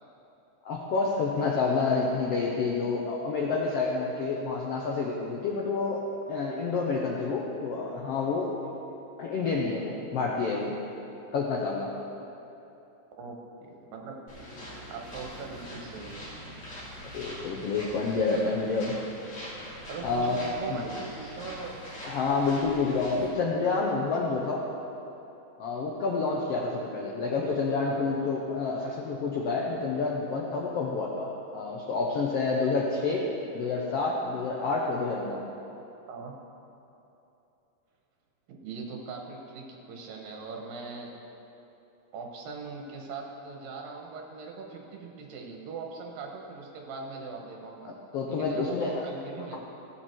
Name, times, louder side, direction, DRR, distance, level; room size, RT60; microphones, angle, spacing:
voice 1, 0.6-6.0 6.3-8.5 9.2-10.7 11.3-11.9 17.1-18.9 20.0-20.4 20.7-20.9 22.0-24.6 25.6-33.3 33.5-35.4 48.1-49.0, left 4 dB, 85° left, -2 dB, 1.3 m, -28 dB
voice 2, 13.2-14.2 14.9-16.3 19.9-21.8 27.8-28.0 36.1-36.3 38.5-41.1 42.1-47.9 48.3-49.6, right 4 dB, 80° right, 0 dB, 2.9 m, -40 dB
sound 1, 14.3-23.3, equal, 40° left, 3.3 m, -43 dB
15.5 x 7.2 x 4.5 m, 2.9 s
omnidirectional pair, 3.9 m